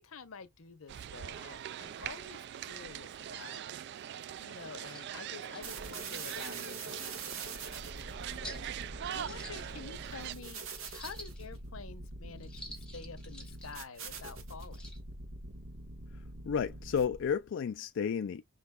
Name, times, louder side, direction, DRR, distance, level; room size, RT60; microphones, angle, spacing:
voice 1, 0.0-3.6 4.1-8.6 8.9-10.6 10.9-14.9, left 5 dB, 90° left, 0.9 m, -49 dB
sound 1, 0.9-10.4, right 10 dB, 55° right, 0.3 m, -42 dB
sound 2, 4.9-5.1 5.5-5.6 6.2-6.5 7.1-7.2 7.6-7.7 8.4-8.7 9.1-10.1 10.7-11.6 12.4-13.8 14.5-15.0, left 1 dB, 5° left, 2.3 m, -49 dB
sound 3, 5.6-17.4, right 3 dB, 75° right, 1.4 m, -44 dB
voice 2, 16.1-18.4, left 7 dB, 65° left, 0.3 m, -32 dB
5.5 x 4.0 x 2.4 m
head